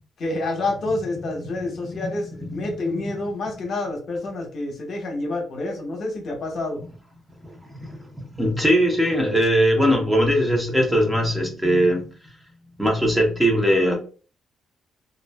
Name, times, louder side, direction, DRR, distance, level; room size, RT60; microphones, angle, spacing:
voice 1, 0.2-6.8, left 2 dB, 60° left, 0.8 m, -28 dB
voice 2, 8.3-12.1 12.8-14.0, equal, 10° right, 0.7 m, -20 dB
2.4 x 2.3 x 2.2 m
cardioid pair, 90°, 0 cm